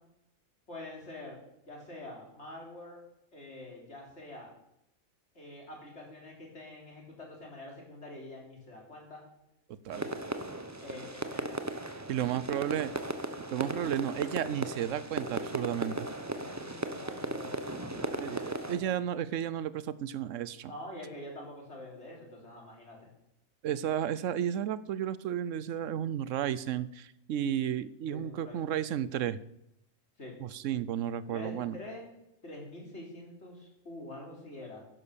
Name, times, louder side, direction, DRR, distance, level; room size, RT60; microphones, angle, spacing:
voice 1, 0.7-1.4 1.7-3.0 3.3-4.5 5.3-9.2 10.8-11.7 16.3-18.9 20.7-23.1 28.1-28.7 30.2-30.4 31.3-32.1 32.4-34.8, left 1 dB, 50° left, -1 dB, 4.1 m, -46 dB
sound 1, 9.9-18.8, right 2 dB, 15° right, 0.8 m, -37 dB
voice 2, 12.1-12.9 13.5-16.1 18.2-20.7 23.6-29.4 30.4-31.8, right 10 dB, 70° right, 17 dB, 1.0 m, -33 dB
11.0 x 11.0 x 6.9 m, 0.82 s
omnidirectional pair, 1.4 m